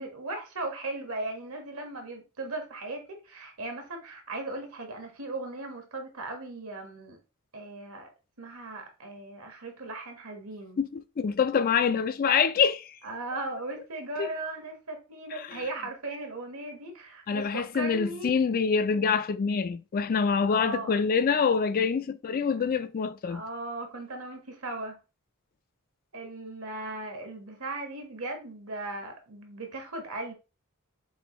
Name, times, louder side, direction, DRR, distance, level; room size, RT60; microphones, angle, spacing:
voice 1, 0.0-7.2 7.5-8.1 8.4-10.8 13.0-18.6 18.9-19.0 20.5-21.0 23.3-25.0 26.1-30.3, right 2 dB, 70° right, 1.4 m, -37 dB
voice 2, 10.8-12.9 14.2-14.3 15.3-15.6 17.3-23.4, left 6 dB, 40° left, 0.3 m, -26 dB
6.3 x 2.6 x 3.0 m
head